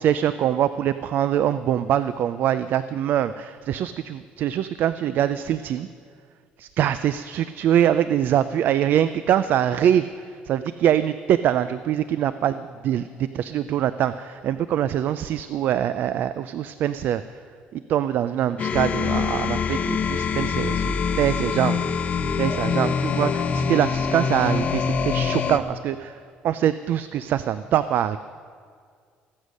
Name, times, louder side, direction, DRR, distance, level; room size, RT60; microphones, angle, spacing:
voice 1, 0.0-5.9 6.6-17.4 17.7-21.8 22.4-28.2, right 10 dB, 65° right, 13 dB, 0.4 m, -23 dB
sound 1, 18.6-25.6, left 6 dB, 40° left, 0.8 m, -24 dB
18.5 x 8.1 x 6.4 m, 2.1 s
cardioid pair, 115°, 4 cm